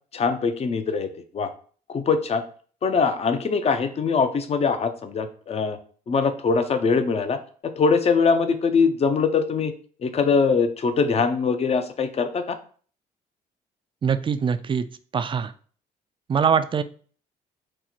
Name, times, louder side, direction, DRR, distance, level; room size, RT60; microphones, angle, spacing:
voice 1, 0.1-1.1 1.3-1.5 1.9-2.4 2.8-5.8 6.1-7.4 7.8-9.7 10.0-12.6, left 5 dB, 35° left, 9 dB, 0.6 m, -22 dB
voice 2, 14.0-14.8 15.1-15.5 16.3-16.8, right 7 dB, 30° right, 11 dB, 0.4 m, -22 dB
4.3 x 2.1 x 4.0 m, 0.44 s
supercardioid pair, 70°, 18 cm